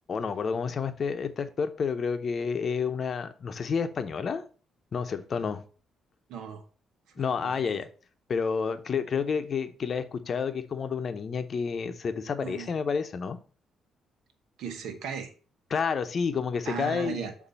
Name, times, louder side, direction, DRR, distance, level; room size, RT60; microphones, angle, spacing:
voice 1, 0.1-4.4 4.9-5.6 7.2-7.9 8.3-13.4 15.7-17.3, left 6 dB, 50° left, 0.7 m, -30 dB
voice 2, 6.3-6.6 7.4-7.8 12.4-12.7 14.6-15.3 16.7-17.3, right 7 dB, 85° right, 1.0 m, -36 dB
6.7 x 2.7 x 5.5 m
cardioid pair, 90°, 0 cm